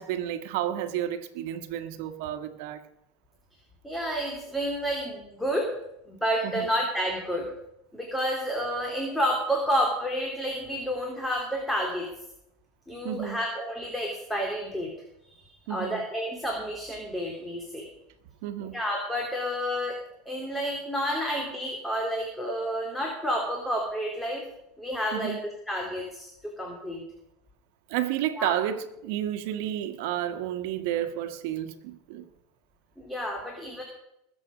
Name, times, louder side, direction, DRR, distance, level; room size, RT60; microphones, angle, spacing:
voice 1, 0.0-2.8 6.4-6.7 13.0-13.4 15.7-16.1 18.4-18.8 25.1-25.4 27.9-32.2, right 11 dB, 70° right, 1.5 m, -31 dB
voice 2, 3.8-5.7 6.1-7.5 7.9-12.1 12.9-14.9 15.7-17.8 18.6-20.0 20.2-24.4 24.8-25.4 25.7-27.0 28.4-28.6 33.0-33.8, equal, 5° left, 2.8 m, -30 dB
21.0 x 7.7 x 5.1 m
supercardioid pair, 110°, 0 cm